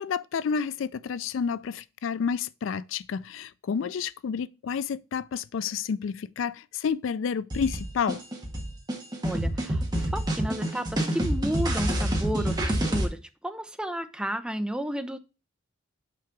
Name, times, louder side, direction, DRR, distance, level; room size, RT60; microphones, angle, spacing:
voice 1, 0.0-8.2, left 6 dB, 70° left, 0.4 m, -30 dB
sound 1, 7.5-13.1, right 1 dB, 20° right, 1.6 m, -27 dB
voice 2, 9.2-15.2, equal, 5° right, 0.6 m, -32 dB
6.0 x 4.8 x 5.9 m
head